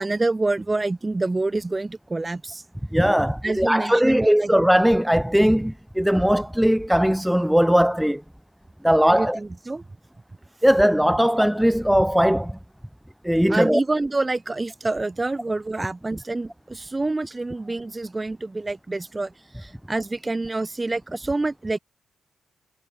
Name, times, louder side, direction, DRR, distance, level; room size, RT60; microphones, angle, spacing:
voice 1, 0.0-2.6 3.4-4.5 9.1-9.8 11.2-11.3 13.5-19.3 19.6-21.8, right 2 dB, 25° right, 2.7 m, -27 dB
voice 2, 2.9-8.2 8.8-9.4 10.6-12.6 13.2-13.8, equal, 5° right, 0.6 m, -19 dB
cardioid pair, 65°, 0 cm